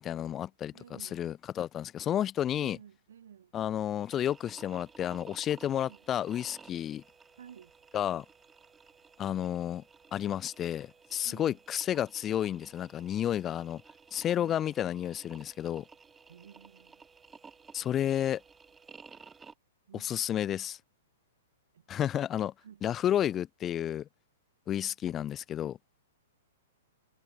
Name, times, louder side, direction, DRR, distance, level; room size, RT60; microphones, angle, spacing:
voice 1, 0.0-0.7 1.0-2.8 3.5-7.0 7.9-8.2 9.2-9.8 10.1-13.8 14.1-15.8 17.7-18.4 19.9-20.8 21.9-22.5 22.8-24.1 24.7-25.8, left 10 dB, 15° left, 0.6 m, -31 dB
voice 2, 0.7-1.2 2.5-3.5 5.7-6.0 7.3-7.7 11.2-11.6 14.4-14.7 16.3-17.0 19.9-20.2 21.7-21.9 22.6-22.8 24.8-24.9, right 8 dB, 75° right, 5.9 m, -53 dB
sound 1, 4.0-19.5, right 5 dB, 10° right, 3.5 m, -55 dB
hypercardioid pair, 170°, 0 cm